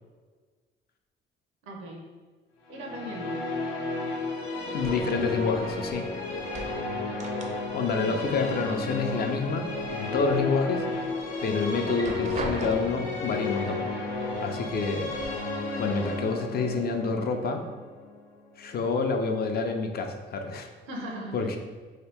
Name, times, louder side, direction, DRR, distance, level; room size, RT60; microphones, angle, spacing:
voice 1, 1.6-2.0 2.7-3.4 8.0-8.2 20.9-21.6, right 1 dB, 90° right, 0 dB, 0.7 m, -38 dB
sound 1, 2.7-18.7, left 3 dB, 90° left, 0.7 m, -33 dB
voice 2, 4.7-6.1 7.7-10.9 11.4-13.8 14.4-15.1 15.8-17.6 18.6-20.7 21.3-21.6, left 4 dB, 50° left, 5 dB, 0.4 m, -28 dB
sound 2, 4.8-6.0 6.3-8.0 8.2-9.2 9.6-10.4 10.9-11.0 11.8-13.2 14.1-14.2 14.6-15.3, right 3 dB, 35° right, 0.4 m, -39 dB
2.8 x 2.6 x 3.4 m, 1.5 s
cardioid pair, 90°, 20 cm